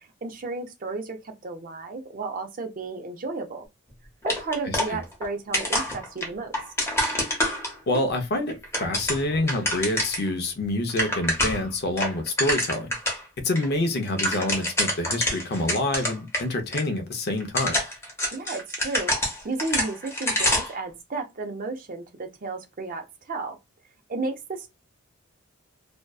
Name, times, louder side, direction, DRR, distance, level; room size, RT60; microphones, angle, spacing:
voice 1, 0.2-3.7 4.2-6.6 18.3-19.1 19.4-23.6 24.1-24.7, right 3 dB, 40° right, 0.5 m, -33 dB
sound 1, 4.3-5.3 5.5-8.0 8.5-10.3 10.6-10.7 10.9-11.7 12.0-13.2 13.5-13.6 13.9-16.4 16.7-16.8 17.4-20.8, left 1 dB, 15° left, 0.7 m, -26 dB
voice 2, 4.6-5.0 7.9-8.5 8.8-12.9 13.4-17.8, left 2 dB, 50° left, 0.5 m, -27 dB
2.6 x 2.1 x 2.3 m
head